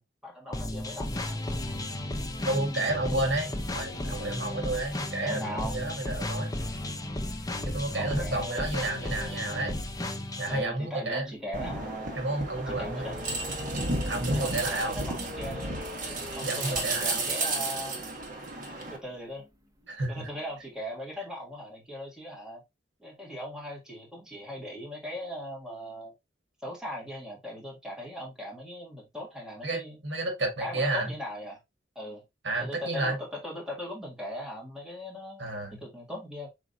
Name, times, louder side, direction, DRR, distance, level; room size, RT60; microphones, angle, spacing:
voice 1, 0.0-1.4 5.2-5.8 7.7-8.6 10.5-12.2 12.7-13.2 14.3-15.8 16.4-18.0 18.7-19.5 20.1-22.6 23.0-26.1 26.6-30.0 30.6-31.6 32.0-32.2 32.6-36.5, left 1 dB, 5° right, 1.6 m, -39 dB
sound 1, 0.5-10.6, left 1 dB, 20° left, 0.6 m, -34 dB
voice 2, 2.5-6.5 7.6-9.8 10.4-11.2 12.2-13.1 14.1-15.0 16.4-17.2 19.9-20.3 29.6-31.1 32.4-33.2 35.4-35.7, right 2 dB, 85° right, 1.6 m, -31 dB
sound 2, 10.7-20.8, equal, 20° right, 0.7 m, -47 dB
sound 3, 11.5-19.0, right 2 dB, 50° right, 1.2 m, -33 dB
4.9 x 3.7 x 2.6 m
head